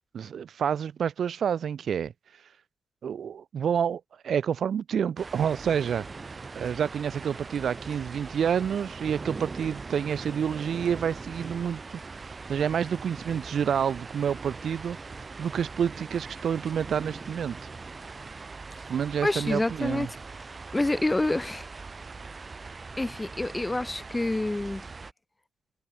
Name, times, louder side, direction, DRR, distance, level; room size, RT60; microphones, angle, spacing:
voice 1, 0.1-2.1 3.0-6.1 6.5-11.8 12.5-15.0 15.4-17.6 18.9-20.1, right 8 dB, 55° right, 0.5 m, -28 dB
sound 1, 5.2-25.1, right 4 dB, 30° right, 7.7 m, -41 dB
voice 2, 19.2-20.1 20.7-21.7 23.0-24.8, left 2 dB, 15° left, 0.7 m, -27 dB
cardioid pair, 90°, 0 cm